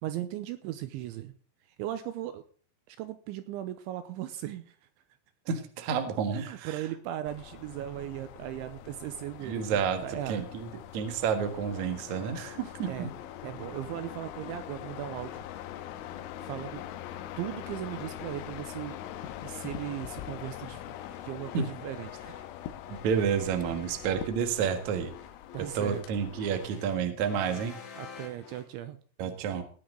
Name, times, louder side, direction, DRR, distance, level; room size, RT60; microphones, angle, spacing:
voice 1, 0.0-1.3 1.8-2.4 2.9-4.8 6.3-10.5 12.9-13.1 13.4-15.4 16.4-16.8 17.4-19.0 19.4-20.8 21.2-22.3 25.5-26.0 28.0-29.0, right 12 dB, 80° right, 11 dB, 2.9 m, -37 dB
voice 2, 5.5-6.8 9.4-10.0 10.3-13.1 21.5-21.7 22.9-25.1 25.7-27.7 29.2-29.6, right 7 dB, 60° right, 7 dB, 1.9 m, -30 dB
sound 1, 7.3-26.7, left 12 dB, 85° left, 3.3 m, -43 dB
sound 2, 11.3-28.7, left 7 dB, 70° left, 4.9 m, -50 dB
18.5 x 9.7 x 3.9 m, 0.43 s
omnidirectional pair, 5.8 m